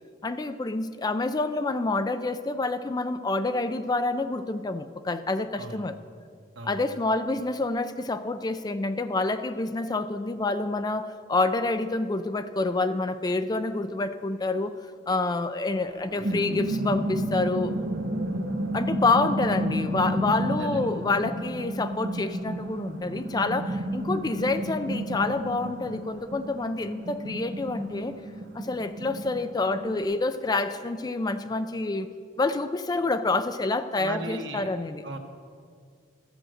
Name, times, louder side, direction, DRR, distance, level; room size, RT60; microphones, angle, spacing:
voice 1, 0.2-6.0 6.6-14.7 15.1-17.8 18.3-18.4 18.7-28.1 28.5-32.1 32.4-35.0, left 3 dB, 20° left, 11 dB, 0.4 m, -28 dB
sound 1, 15.8-30.0, right 1 dB, 60° right, 1.1 m, -31 dB
voice 2, 20.5-20.9 34.0-34.7 35.0-35.2, right 2 dB, 90° right, 4 dB, 1.2 m, -37 dB
13.5 x 7.6 x 6.5 m, 2.2 s
head